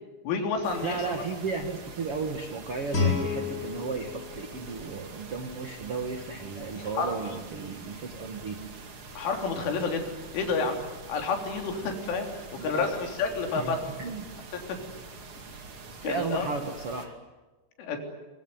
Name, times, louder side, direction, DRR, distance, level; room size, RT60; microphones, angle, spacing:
voice 1, 0.3-1.1 6.8-7.4 9.2-10.8 11.1-13.8 14.7-14.8 16.0-16.5 17.8-18.0, left 4 dB, 85° left, 4 dB, 5.9 m, -30 dB
sound 1, 0.6-17.1, right 4 dB, 40° right, 2.2 m, -45 dB
voice 2, 0.8-8.7 12.6-12.9 13.5-14.3 16.0-17.2, right 4 dB, 65° right, 6 dB, 1.4 m, -34 dB
Guitar, 2.9-5.7, left 4 dB, 20° left, 4.1 m, -31 dB
24.0 x 24.0 x 9.4 m, 1.2 s
omnidirectional pair, 5.5 m